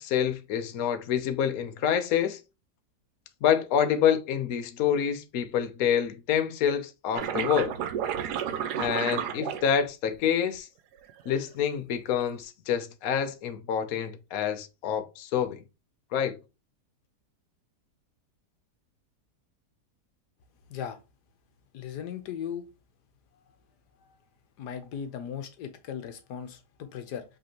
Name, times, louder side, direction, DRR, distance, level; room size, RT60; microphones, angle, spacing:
voice 1, 0.0-2.4 3.4-7.7 8.8-10.7 11.3-15.6 16.1-16.3, left 8 dB, 65° left, 1.1 m, -27 dB
sound 1, 7.1-10.1 10.9-11.4, right 9 dB, 75° right, 1.1 m, -31 dB
voice 2, 21.7-22.6 24.6-27.2, left 8 dB, 80° left, 1.4 m, -37 dB
5.3 x 3.4 x 2.9 m
omnidirectional pair, 1.7 m